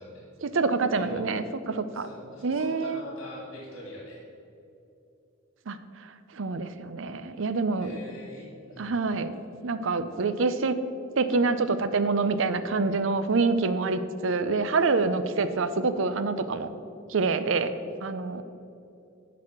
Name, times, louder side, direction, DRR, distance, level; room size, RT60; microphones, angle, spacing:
voice 1, 0.4-2.1 2.4-3.0 5.7-7.9 8.8-9.3 9.6-10.8 11.2-16.7 17.1-17.7 18.0-18.4, right 4 dB, 65° right, 11 dB, 0.5 m, -26 dB
voice 2, 1.9-4.2 7.8-9.0, equal, 75° left, -3 dB, 2.4 m, -43 dB
11.0 x 4.2 x 7.4 m, 2.7 s
head